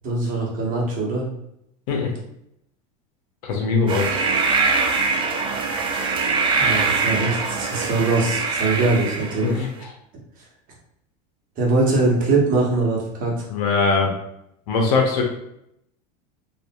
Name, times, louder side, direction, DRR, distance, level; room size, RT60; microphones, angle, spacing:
voice 1, 0.0-1.3 6.6-9.6 11.6-13.5, right 3 dB, 40° right, -2 dB, 1.0 m, -22 dB
voice 2, 3.4-4.2 9.4-9.7 13.5-14.1 14.7-15.2, left 4 dB, 70° left, 1 dB, 0.8 m, -21 dB
sound 1, 3.9-9.6, right 4 dB, 25° right, 0.4 m, -23 dB
2.6 x 2.4 x 2.3 m, 0.78 s
supercardioid pair, 105°, 21 cm